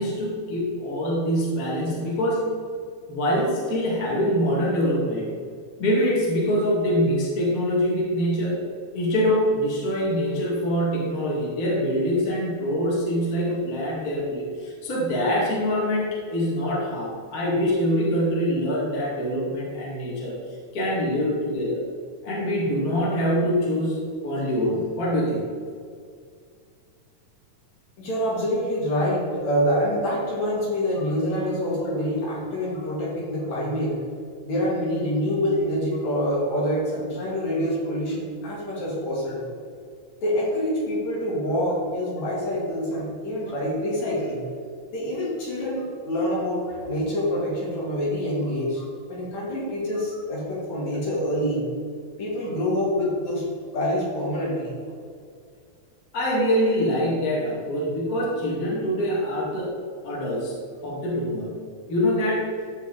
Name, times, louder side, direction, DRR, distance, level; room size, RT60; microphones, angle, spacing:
voice 1, 0.0-2.5 3.1-5.3 5.8-8.6 8.9-20.3 20.7-21.8 22.2-25.4 56.1-59.7 60.0-60.5 60.8-61.6 61.9-62.5, equal, 30° left, -6 dB, 2.4 m, -24 dB
voice 2, 28.0-34.0 34.4-39.5 40.2-44.4 44.9-48.8 49.1-51.7 52.2-53.5 53.7-54.7, equal, 60° left, -6 dB, 3.7 m, -26 dB
14.0 x 5.1 x 4.1 m, 2.1 s
omnidirectional pair, 3.6 m